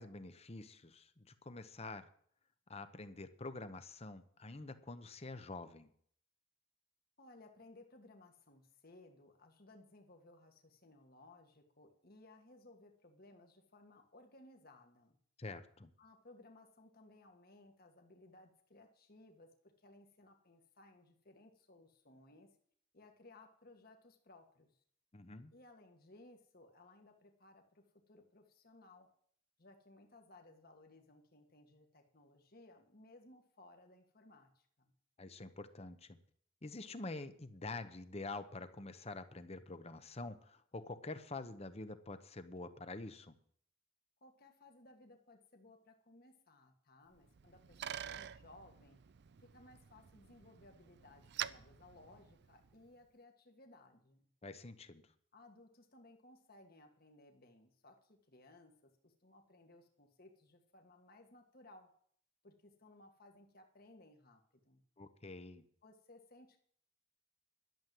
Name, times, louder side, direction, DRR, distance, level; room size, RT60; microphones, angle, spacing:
voice 1, 0.0-2.1 2.7-5.9 15.4-15.9 25.1-25.5 35.2-36.2 36.6-43.3 54.4-55.1 65.0-65.6, left 3 dB, 30° left, 11 dB, 0.9 m, -47 dB
voice 2, 7.2-15.2 16.0-22.5 22.9-24.7 25.5-29.1 29.6-34.9 44.2-49.0 49.4-54.3 55.3-61.9 62.4-64.8 65.8-66.6, left 2 dB, 45° left, 4 dB, 1.7 m, -61 dB
Bicycle, 47.2-52.9, right 10 dB, 55° right, 0.5 m, -48 dB
12.0 x 7.5 x 9.3 m, 0.62 s
head